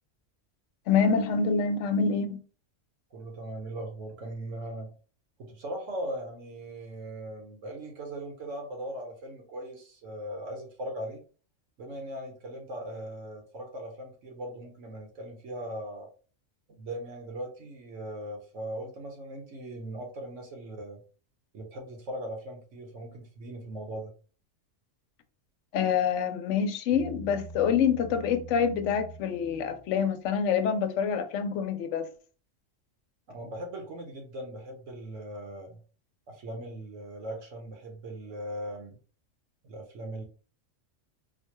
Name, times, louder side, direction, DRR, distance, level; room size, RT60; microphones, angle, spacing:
voice 1, 0.9-2.4 25.7-32.1, left 6 dB, 75° left, 0.9 m, -26 dB
voice 2, 3.1-4.9 5.4-11.2 11.8-16.1 16.8-21.0 21.5-24.1 33.3-35.8 36.3-39.0 39.6-40.2, right 1 dB, 75° right, 1.2 m, -39 dB
Bass guitar, 26.9-30.3, right 3 dB, 30° left, 1.1 m, -45 dB
4.2 x 2.2 x 3.0 m
omnidirectional pair, 1.3 m